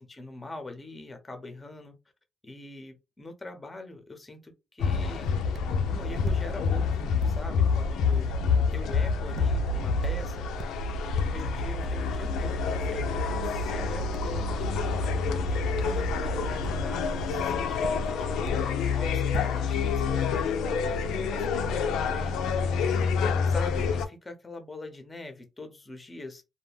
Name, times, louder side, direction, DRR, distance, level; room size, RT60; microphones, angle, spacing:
voice 1, 0.0-2.0 2.4-8.4 8.7-10.5 11.2-14.9 15.3-23.1 23.4-26.4, left 2 dB, 20° left, 6 dB, 0.7 m, -43 dB
sound 1, 4.8-24.1, left 5 dB, 85° left, 0.4 m, -27 dB
sound 2, 5.5-5.8 6.2-6.9 7.2-7.4 8.1-8.3 9.3-9.6 10.0-10.3 10.6-11.0 11.4-11.5 11.8-12.0 12.9-13.1 13.6-13.8 14.1-14.4 15.0-15.2 15.8-16.9 17.3-18.8 19.1-19.4, right 3 dB, 65° right, 0.4 m, -40 dB
2.2 x 2.1 x 3.2 m, 0.26 s
cardioid pair, 90°, 0 cm